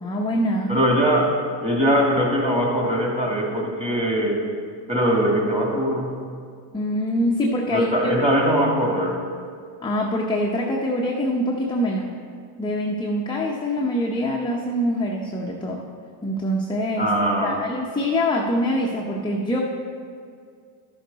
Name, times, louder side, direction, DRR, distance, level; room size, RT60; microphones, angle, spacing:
voice 1, 0.0-0.7 6.7-7.9 9.8-12.1 12.6-15.8 16.2-17.1 17.4-19.6, equal, 10° left, -2 dB, 0.7 m, -24 dB
voice 2, 0.7-4.5 4.9-6.2 7.7-9.2 17.0-17.6, equal, 15° right, -2 dB, 2.1 m, -21 dB
13.0 x 6.5 x 4.0 m, 2.2 s
supercardioid pair, 130°, 50 cm